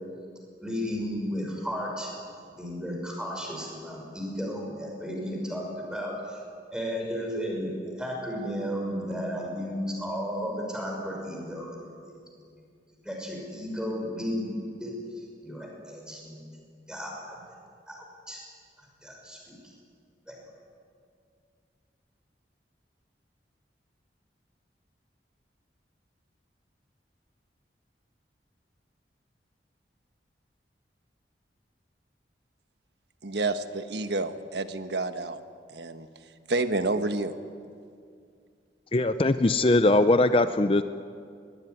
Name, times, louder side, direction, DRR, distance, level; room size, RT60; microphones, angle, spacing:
voice 1, 0.6-2.1 2.4-6.4 6.7-7.7 8.0-11.8 12.0-12.1 13.0-16.6 16.9-17.4 17.9-18.4 19.0-19.5 20.3-20.4, equal, 5° right, -1 dB, 5.9 m, -34 dB
voice 2, 33.2-35.4 35.7-36.1 36.5-37.3, right 2 dB, 75° right, 9 dB, 1.3 m, -29 dB
voice 3, 38.9-40.8, left 2 dB, 30° left, 11 dB, 0.5 m, -21 dB
21.5 x 20.0 x 9.6 m, 2.3 s
head